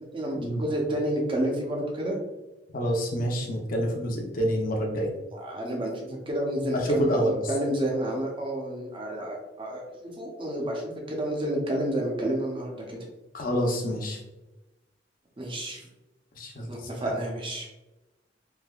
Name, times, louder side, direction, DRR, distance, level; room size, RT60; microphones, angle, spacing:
voice 1, 0.1-2.2 5.3-13.0 15.4-15.8 16.7-17.7, right 1 dB, 30° right, -1 dB, 0.7 m, -30 dB
voice 2, 2.7-5.1 6.9-7.4 13.3-14.2 16.4-16.7 17.0-17.1, equal, 50° left, 0 dB, 0.6 m, -27 dB
3.3 x 2.7 x 2.3 m, 1.0 s
head